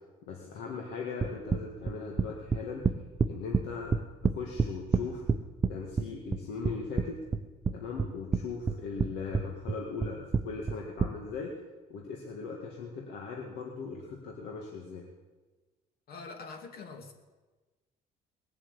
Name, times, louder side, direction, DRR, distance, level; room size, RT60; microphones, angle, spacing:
voice 1, 0.3-2.9 3.3-5.2 5.7-7.2 7.7-11.6 11.9-15.0, left 4 dB, 85° left, 0 dB, 2.1 m, -39 dB
sound 1, 1.2-3.6 3.9-5.7 6.0-7.1 7.3-8.4 8.7-9.1 9.3-11.1, right 5 dB, 25° right, 0.7 m, -27 dB
voice 2, 16.1-17.1, left 4 dB, 65° left, 4 dB, 2.5 m, -44 dB
20.0 x 7.5 x 8.3 m, 1.3 s
cardioid pair, 110°, 17 cm